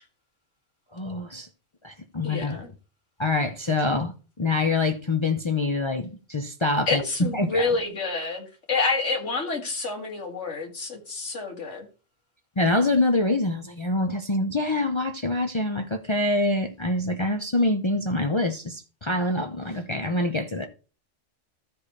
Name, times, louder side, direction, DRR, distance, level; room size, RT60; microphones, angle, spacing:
voice 1, 0.9-1.5 1.8-2.7 3.2-7.7 12.6-20.7, left 2 dB, 30° left, 0.6 m, -25 dB
voice 2, 2.2-2.7 6.9-11.9, left 3 dB, 70° left, 2.2 m, -28 dB
13.0 x 5.1 x 4.1 m
omnidirectional pair, 1.3 m